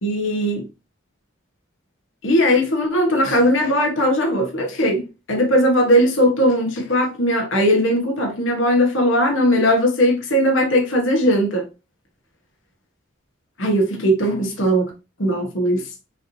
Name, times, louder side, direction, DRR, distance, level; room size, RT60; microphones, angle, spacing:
voice 1, 0.0-0.6 2.2-5.0 5.3-11.6 13.6-14.9 15.2-15.8, equal, 70° left, 1.3 m, -18 dB
5.6 x 3.1 x 2.7 m
head